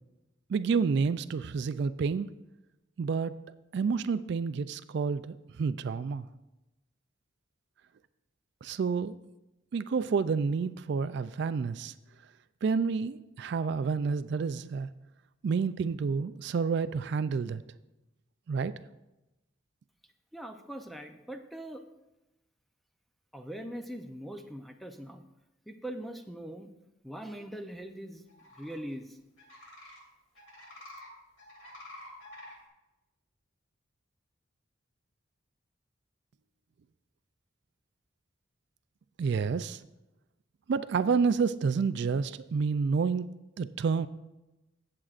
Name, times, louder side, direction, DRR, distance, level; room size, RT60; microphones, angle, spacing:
voice 1, 0.5-2.3 3.0-3.4 3.7-6.3 8.6-9.2 9.7-11.9 12.6-14.9 15.4-17.6 18.5-18.7 39.2-39.8 40.7-43.3 43.6-44.1, right 5 dB, 60° right, 13 dB, 0.3 m, -29 dB
voice 2, 20.3-21.8 23.3-25.2 25.7-26.7 27.0-28.2 28.6-29.2, right 1 dB, ahead, 5 dB, 0.5 m, -41 dB
sound 1, 28.3-28.7 29.4-30.0 30.3-31.1 31.4-32.6, left 1 dB, 75° left, 2.7 m, -48 dB
16.5 x 7.6 x 2.5 m, 0.99 s
head